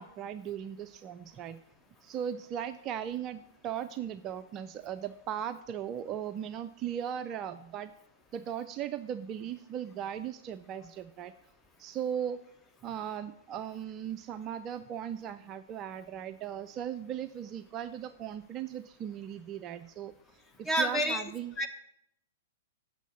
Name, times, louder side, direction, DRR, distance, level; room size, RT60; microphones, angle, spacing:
voice 1, 0.0-1.6 2.0-7.9 8.3-11.3 11.8-12.4 12.8-20.1 20.6-21.6, right 9 dB, 30° right, 11 dB, 0.3 m, -38 dB
voice 2, 20.7-21.2 21.6-21.7, equal, 15° left, 5 dB, 0.9 m, -28 dB
8.1 x 6.3 x 6.8 m, 0.77 s
figure-of-eight pair, 105°, 0 cm